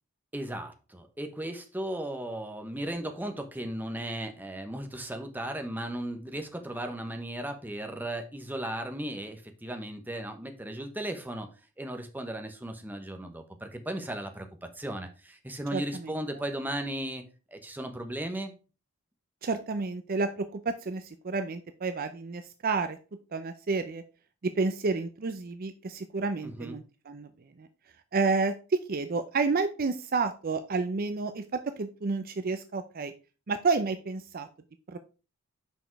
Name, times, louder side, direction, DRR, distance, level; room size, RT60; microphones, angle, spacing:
voice 1, 0.3-11.5 11.8-17.2 17.5-18.5 26.4-26.8, right 1 dB, 10° right, 5 dB, 1.0 m, -36 dB
voice 2, 15.7-16.1 19.4-23.0 23.3-24.0 24.4-27.3 27.6-27.7 28.1-31.4 31.8-33.1 33.5-34.5 34.9-35.0, right 4 dB, 45° right, 9 dB, 0.5 m, -30 dB
6.2 x 5.0 x 4.6 m, 0.33 s
head